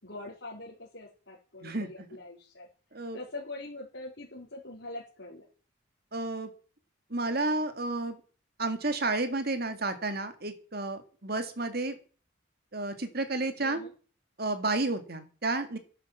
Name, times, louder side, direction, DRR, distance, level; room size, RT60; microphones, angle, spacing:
voice 1, 0.0-2.7 3.1-5.5 13.6-13.9, left 2 dB, 60° left, -6 dB, 4.1 m, -43 dB
voice 2, 6.1-6.5 7.1-8.2 8.6-12.0 12.7-13.8 14.4-15.8, right 2 dB, 50° right, 9 dB, 2.2 m, -31 dB
11.5 x 11.0 x 7.3 m, 0.39 s
head